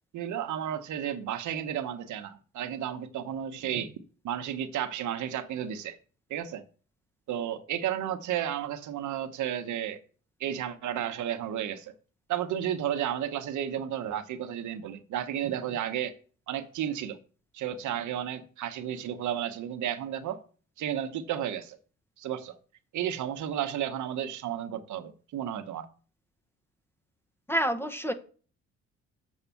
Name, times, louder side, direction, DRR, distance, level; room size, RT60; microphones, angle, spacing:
voice 1, 0.1-3.9 4.2-6.0 6.3-6.6 7.3-10.0 10.4-11.9 12.3-16.1 16.5-17.2 17.5-20.4 20.8-21.8 22.2-22.6 22.9-25.9, right 10 dB, 75° right, 1.1 m, -32 dB
voice 2, 27.5-28.1, equal, 10° left, 1.0 m, -28 dB
7.2 x 4.9 x 7.0 m
cardioid pair, 90°, 30 cm